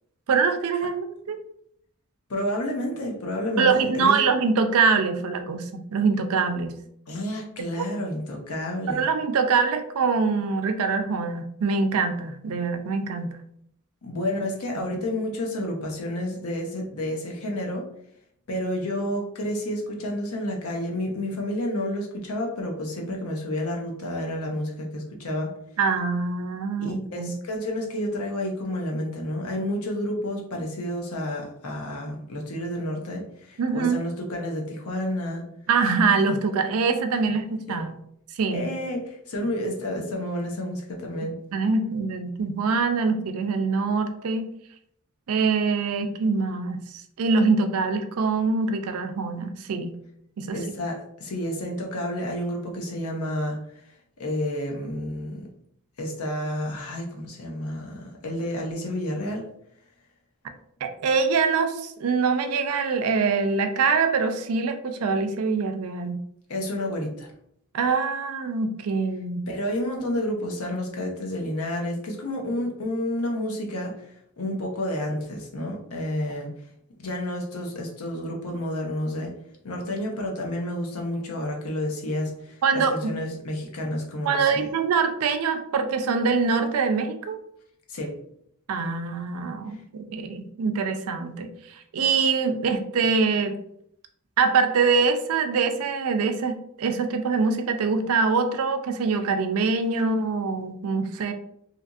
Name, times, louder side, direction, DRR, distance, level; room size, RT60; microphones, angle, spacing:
voice 1, 0.3-1.4 3.6-6.7 7.8-7.9 8.9-13.4 25.8-27.3 33.6-34.0 35.7-37.9 38.4-38.7 41.5-44.5 45.3-46.8 47.2-49.9 50.4-50.6 60.8-66.2 67.7-69.4 82.6-83.1 84.3-87.4 88.7-91.5 91.9-93.6 94.4-101.3, right 4 dB, 80° right, 7 dB, 0.4 m, -24 dB
voice 2, 2.3-4.2 7.1-9.0 14.0-17.8 18.5-25.5 26.8-35.4 37.5-37.8 38.5-41.3 50.5-53.8 54.2-55.4 56.0-59.4 66.5-67.3 69.5-73.9 74.4-76.5 77.0-79.3 79.6-84.6 87.9-88.2, left 1 dB, 85° left, 0 dB, 0.7 m, -30 dB
2.8 x 2.5 x 2.4 m, 0.71 s
head